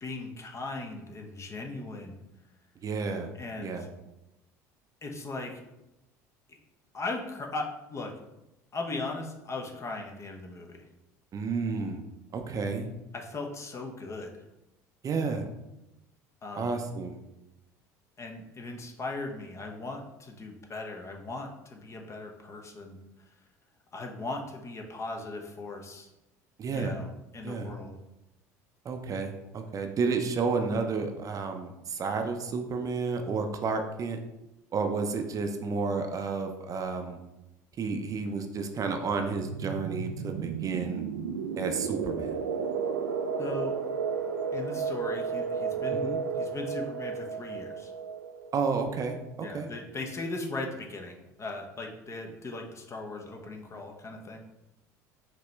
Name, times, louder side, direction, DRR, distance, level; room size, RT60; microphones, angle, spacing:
voice 1, 0.0-2.2 3.4-3.9 5.0-5.6 6.5-6.6 6.9-8.1 8.7-10.8 13.1-14.4 16.4-16.8 18.2-23.0 23.9-26.1 26.7-28.0 43.4-43.8 44.5-46.1 46.3-47.9 49.4-54.4, left 2 dB, 30° left, 3 dB, 0.9 m, -38 dB
voice 2, 2.8-3.3 3.6-3.9 11.3-12.0 12.3-12.9 15.0-15.5 16.6-17.2 26.6-27.0 27.4-27.7 28.8-34.2 34.7-37.2 37.8-41.0 41.6-42.4 45.9-46.2 48.5-49.2 49.5-49.7, right 4 dB, 40° right, 5 dB, 0.6 m, -31 dB
sound 1, 39.1-49.6, right 5 dB, 90° right, 0.4 m, -33 dB
5.0 x 3.0 x 3.3 m, 0.92 s
hypercardioid pair, 70°, 9 cm